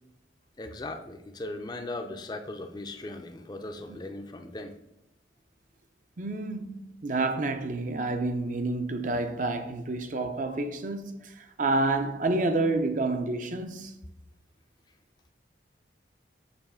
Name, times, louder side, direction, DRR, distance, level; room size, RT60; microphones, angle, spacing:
voice 1, 0.6-4.8, left 2 dB, 20° left, 0.4 m, -38 dB
voice 2, 6.2-13.9, right 2 dB, 45° right, 0.5 m, -29 dB
6.9 x 3.0 x 5.5 m
head